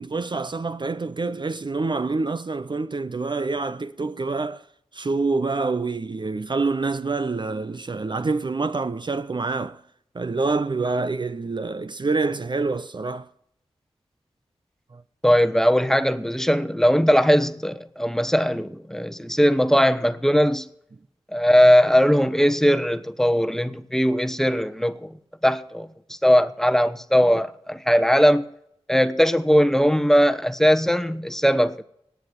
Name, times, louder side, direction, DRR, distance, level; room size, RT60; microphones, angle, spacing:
voice 1, 0.0-4.7 4.9-9.8 10.1-13.3 14.9-15.0, right 3 dB, 45° right, 0.6 m, -26 dB
voice 2, 15.2-20.7 21.3-25.2 25.4-28.4 28.9-31.8, equal, 5° left, 1.1 m, -19 dB
18.5 x 8.0 x 7.0 m
cardioid pair, 45°, 11 cm